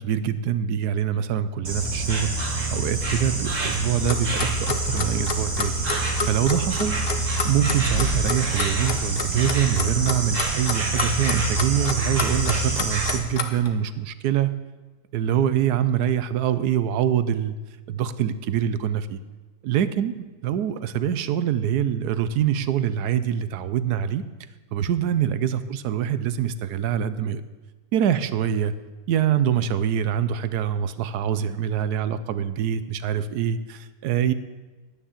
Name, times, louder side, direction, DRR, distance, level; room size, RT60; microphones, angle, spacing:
voice 1, 0.0-5.8 6.3-7.0 7.4-14.5 15.1-17.5 17.9-19.2 19.6-20.2 20.4-24.2 24.7-27.4 27.9-28.7 29.1-34.3, right 9 dB, 70° right, 13 dB, 1.0 m, -24 dB
Insect, 1.6-13.2, right 2 dB, 40° right, 1.9 m, -26 dB
Clock, 4.1-13.7, left 5 dB, 45° left, 0.8 m, -29 dB
10.5 x 9.5 x 7.3 m, 1.2 s
omnidirectional pair, 2.1 m